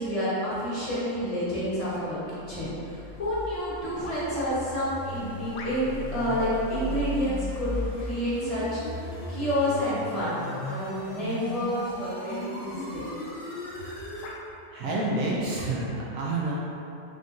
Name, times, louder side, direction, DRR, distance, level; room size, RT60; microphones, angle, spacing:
voice 1, 0.0-10.3 10.6-13.1, equal, 30° left, -11 dB, 1.2 m, -29 dB
sound 1, 2.2-14.4, equal, 45° left, 0.8 m, -37 dB
sound 2, 4.0-4.5 5.5-6.1 6.9-7.1 8.1-8.5 9.3-9.5 11.4-11.6 12.2-12.4 13.2-13.3 14.2-14.5 15.3-15.4, left 2 dB, 75° left, 0.9 m, -44 dB
voice 2, 14.7-16.6, right 2 dB, 80° right, -5 dB, 1.0 m, -29 dB
3.6 x 2.7 x 3.6 m, 2.9 s
omnidirectional pair, 1.4 m